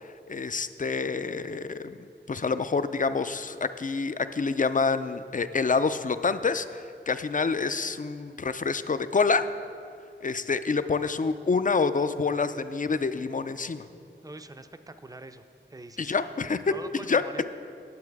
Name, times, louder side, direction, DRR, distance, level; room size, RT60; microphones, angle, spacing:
voice 1, 0.3-2.0 2.3-9.5 10.2-13.8 16.0-16.6 17.1-17.5, left 4 dB, 45° left, 12 dB, 0.4 m, -27 dB
voice 2, 14.2-15.4 15.7-17.5, right 2 dB, 20° right, 9 dB, 0.4 m, -44 dB
9.7 x 7.7 x 4.7 m, 2.5 s
wide cardioid pair, 45°, 20 cm